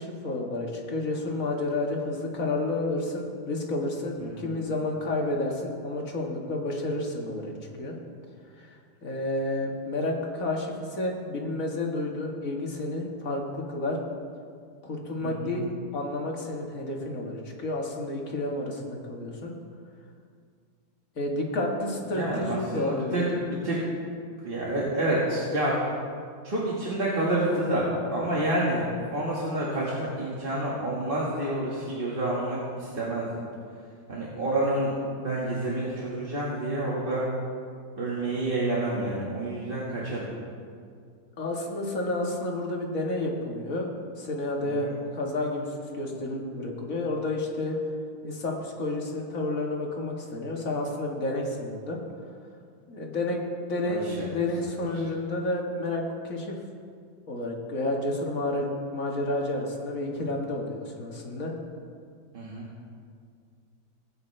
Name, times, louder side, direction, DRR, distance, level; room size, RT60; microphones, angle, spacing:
voice 1, 0.0-7.5 7.8-8.0 8.6-14.0 14.8-19.5 21.2-23.4 41.4-43.9 44.2-44.9 45.1-47.8 48.2-52.0 52.9-53.4 53.7-56.5 57.3-61.5, left 2 dB, 45° left, 0 dB, 1.9 m, -30 dB
voice 2, 4.2-4.5 15.2-15.6 22.1-23.8 24.4-25.8 26.4-28.9 29.1-33.3 34.1-37.2 38.0-40.3 44.6-44.9 53.8-54.7 54.9-55.0 62.3-62.7, right 1 dB, 30° right, -6 dB, 1.8 m, -29 dB
19.5 x 9.3 x 3.3 m, 2.2 s
omnidirectional pair, 2.1 m